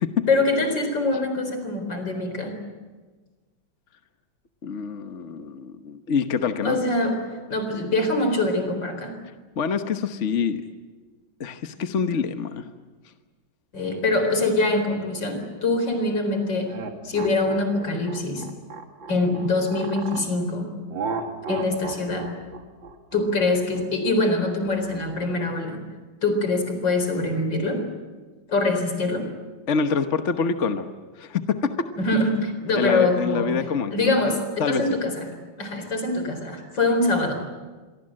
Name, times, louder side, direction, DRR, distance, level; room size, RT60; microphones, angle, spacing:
voice 1, 0.3-2.6 6.6-7.2 7.5-9.1 13.7-16.7 17.0-18.4 19.1-20.7 21.5-22.3 23.1-25.8 26.2-27.8 28.5-29.3 32.0-33.5 33.9-35.3 35.6-37.3, left 2 dB, 65° left, 6 dB, 4.8 m, -24 dB
voice 2, 4.6-6.8 9.6-10.6 11.4-12.6 29.7-30.9 31.2-31.9 32.7-34.3 34.6-34.8, left 6 dB, 45° left, 8 dB, 1.2 m, -26 dB
sound 1, 16.7-20.3 20.9-25.4, right 4 dB, 75° right, 2.7 m, -35 dB
26.5 x 23.5 x 7.7 m, 1.3 s
omnidirectional pair, 2.1 m